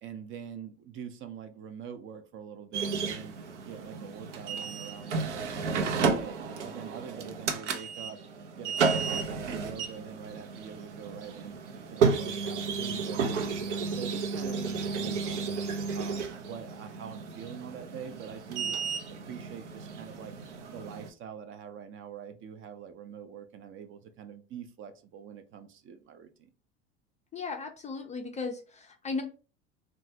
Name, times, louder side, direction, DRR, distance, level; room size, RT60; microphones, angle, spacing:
voice 1, 0.0-3.4 3.7-8.2 8.6-11.6 11.9-15.5 15.9-18.8 19.3-20.3 20.7-26.5, right 8 dB, 35° right, 8 dB, 0.5 m, -44 dB
sound 1, 2.7-21.1, right 5 dB, 85° right, 0.6 m, -32 dB
voice 2, 27.3-29.2, left 4 dB, 20° left, 4 dB, 0.4 m, -36 dB
3.0 x 2.2 x 2.7 m, 0.35 s
hypercardioid pair, 85°, 35 cm